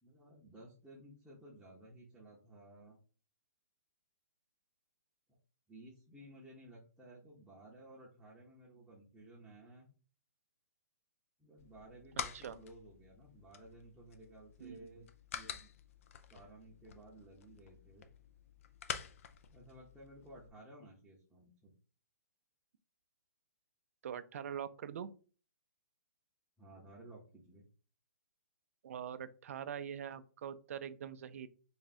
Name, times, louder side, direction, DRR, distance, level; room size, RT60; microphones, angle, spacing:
voice 1, 0.0-3.0 5.3-5.4 5.7-9.9 11.4-15.1 15.3-15.7 16.3-18.1 19.5-21.7 26.6-27.6, right 1 dB, 5° right, -6 dB, 0.8 m, -56 dB
sound 1, 11.6-20.5, left 8 dB, 50° left, 0.4 m, -48 dB
voice 2, 14.6-15.1 24.0-25.1 28.8-31.5, right 8 dB, 55° right, 12 dB, 0.4 m, -43 dB
3.4 x 2.3 x 4.1 m, 0.38 s
hypercardioid pair, 155°, 9 cm